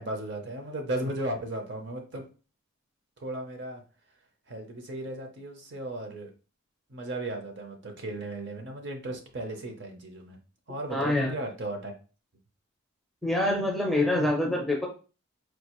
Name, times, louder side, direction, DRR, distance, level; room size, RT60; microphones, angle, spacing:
voice 1, 0.0-2.3 3.2-3.8 4.5-6.3 6.9-10.4 10.7-11.9, right 1 dB, 50° right, 4 dB, 0.7 m, -35 dB
voice 2, 10.9-11.3 13.2-14.9, left 1 dB, ahead, -1 dB, 0.6 m, -25 dB
4.6 x 2.4 x 3.0 m, 0.35 s
head